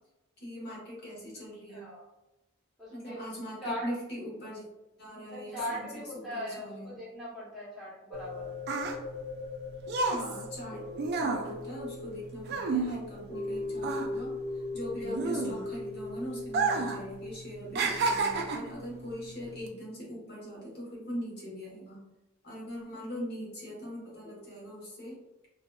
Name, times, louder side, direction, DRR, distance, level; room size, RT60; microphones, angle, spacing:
voice 1, 0.4-1.8 2.9-4.7 5.0-5.9 6.1-6.9 9.9-10.9 11.2-22.0 22.4-25.2, equal, 55° left, -5 dB, 1.1 m, -41 dB
voice 2, 1.7-2.1 2.8-3.2 3.6-3.9 5.3-8.5, equal, ahead, -10 dB, 1.0 m, -39 dB
sound 1, 8.1-18.5 18.9-19.0, left 2 dB, 20° left, 1.3 m, -40 dB
sound 2, 8.2-13.5 13.8-15.9 16.4-17.0 17.3-18.8 19.5-19.7, right 4 dB, 55° right, 0.3 m, -31 dB
2.6 x 2.4 x 2.2 m, 1.0 s
head